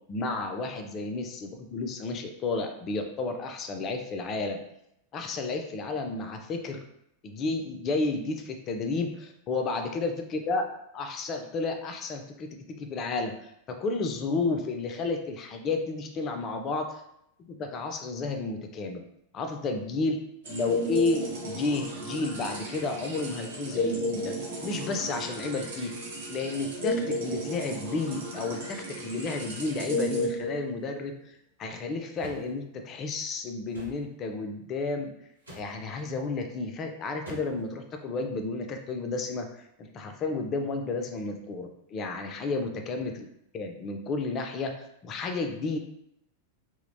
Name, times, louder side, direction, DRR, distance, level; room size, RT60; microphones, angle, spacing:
voice 1, 0.1-4.6 5.1-6.8 7.2-10.6 10.9-17.0 17.4-19.0 19.3-20.2 20.5-24.3 24.6-26.0 26.3-31.1 31.6-35.1 35.6-43.3 43.5-44.7 45.0-45.8, left 3 dB, 30° left, 5 dB, 0.3 m, -32 dB
sound 1, 20.4-31.0, equal, 60° right, 0.8 m, -33 dB
sound 2, 32.2-32.5 33.7-34.0 35.4-35.7 37.2-37.7, right 1 dB, 85° right, 1.0 m, -44 dB
2.8 x 2.0 x 2.5 m, 0.77 s
figure-of-eight pair, 90°, 0 cm